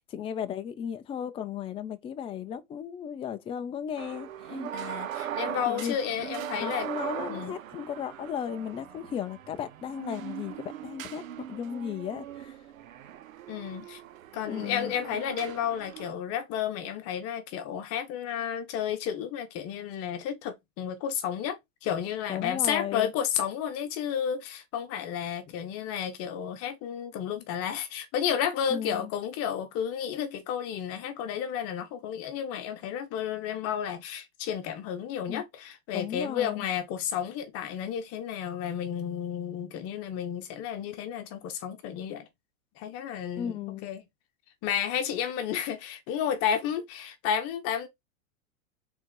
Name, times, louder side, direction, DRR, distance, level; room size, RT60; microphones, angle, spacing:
voice 1, 0.1-4.7 5.7-6.0 6.2-12.6 14.5-14.9 22.3-23.1 28.7-29.1 35.3-35.4 35.9-36.7 43.4-43.9, left 8 dB, 15° left, 0.6 m, -35 dB
sound 1, 4.0-16.1, right 11 dB, 75° right, 1.1 m, -40 dB
voice 2, 4.7-6.9 7.3-7.6 13.5-14.0 14.3-42.3 42.8-44.0 44.6-47.9, left 8 dB, 35° left, 1.2 m, -32 dB
6.1 x 3.9 x 4.7 m
hypercardioid pair, 130°, 41 cm